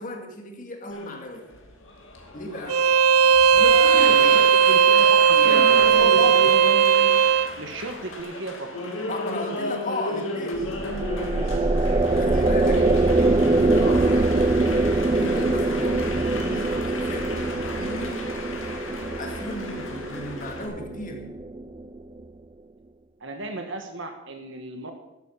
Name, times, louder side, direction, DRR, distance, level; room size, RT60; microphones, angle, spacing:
voice 1, 0.0-1.5 2.3-2.9 3.5-4.5 5.1-6.6 9.1-10.7 12.2-18.2 19.2-21.3, left 2 dB, 40° left, 3 dB, 2.0 m, -35 dB
Applause, 0.9-20.7, left 2 dB, 65° left, 2.4 m, -35 dB
Bowed string instrument, 2.7-7.5, right 7 dB, 85° right, 0.5 m, -17 dB
voice 2, 3.9-6.3 7.6-8.8 12.6-13.0 23.2-24.9, right 2 dB, 60° right, 5 dB, 1.4 m, -34 dB
sound 1, 10.6-22.0, right 2 dB, 25° right, 0.4 m, -23 dB
12.5 x 8.8 x 7.3 m, 0.96 s
head